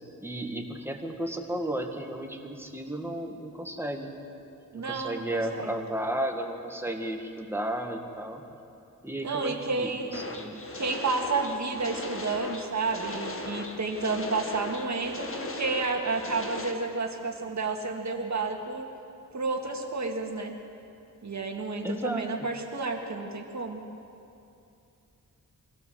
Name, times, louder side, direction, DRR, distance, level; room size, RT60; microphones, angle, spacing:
voice 1, 0.2-4.2 4.7-8.4 9.0-10.6 21.8-22.5, right 1 dB, 5° right, 2 dB, 1.9 m, -33 dB
voice 2, 4.7-5.8 9.2-10.2 10.8-18.9 19.3-20.5 21.2-23.8, right 3 dB, 55° right, 2 dB, 1.9 m, -31 dB
sound 1, 10.1-16.7, left 2 dB, 40° left, 1.7 m, -38 dB
23.5 x 17.0 x 7.7 m, 2.7 s
wide cardioid pair, 120°, 33 cm